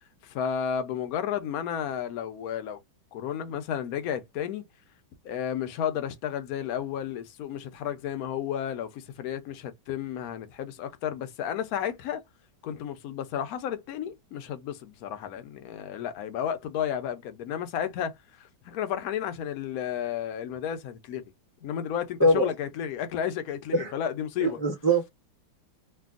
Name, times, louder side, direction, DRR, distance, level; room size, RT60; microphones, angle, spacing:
voice 1, 0.2-2.8 3.1-4.6 5.2-12.2 12.6-21.2 21.6-24.6, left 9 dB, 70° left, 0.9 m, -32 dB
voice 2, 24.4-25.1, right 1 dB, 25° left, 0.4 m, -22 dB
3.3 x 2.3 x 2.4 m
omnidirectional pair, 2.1 m